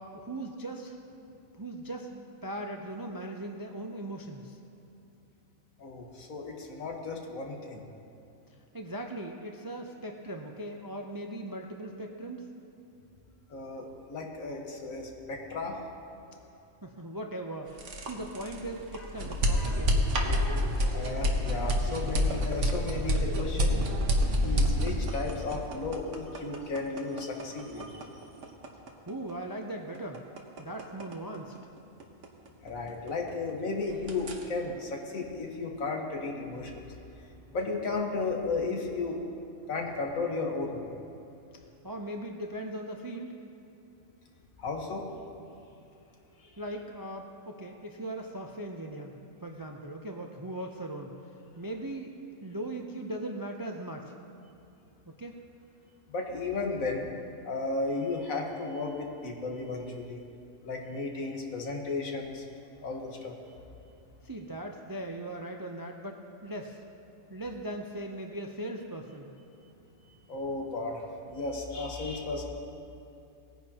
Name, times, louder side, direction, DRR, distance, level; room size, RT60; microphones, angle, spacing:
voice 1, 0.0-4.6 8.7-12.5 16.8-20.1 29.1-30.2 30.6-31.5 41.8-43.3 46.6-51.1 51.6-52.1 52.4-54.1 55.1-55.4 64.2-66.8 67.3-69.3, right 1 dB, 35° right, 2 dB, 0.3 m, -39 dB
voice 2, 5.8-7.9 13.5-15.8 19.5-19.8 20.9-23.9 24.4-27.9 32.6-36.8 37.5-39.2 39.7-40.8 44.6-45.1 46.4-46.5 56.1-57.1 57.4-60.2 60.6-62.5 62.8-63.3 70.3-72.5, left 3 dB, 85° left, 1 dB, 1.7 m, -34 dB
sound 1, 17.7-33.5 33.8-34.5, equal, 65° right, 1.4 m, -29 dB
19.0 x 10.0 x 2.9 m, 2.8 s
omnidirectional pair, 1.4 m